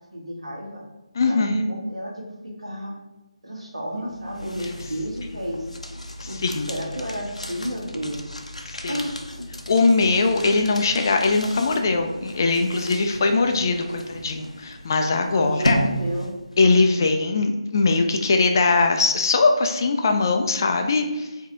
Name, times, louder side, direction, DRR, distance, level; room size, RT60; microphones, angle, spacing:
voice 1, 0.1-0.8 1.2-3.0 3.4-5.7 6.3-8.2 8.9-9.4 15.3-16.3, equal, 65° right, -2 dB, 1.4 m, -31 dB
voice 2, 1.2-1.6 6.2-6.7 8.7-8.9 9.7-15.8 16.6-21.3, left 3 dB, 35° left, 4 dB, 0.4 m, -21 dB
sound 1, 4.0-16.6, equal, 85° left, 0.6 m, -34 dB
4.6 x 2.8 x 3.6 m, 1.1 s
figure-of-eight pair, 155°, 3 cm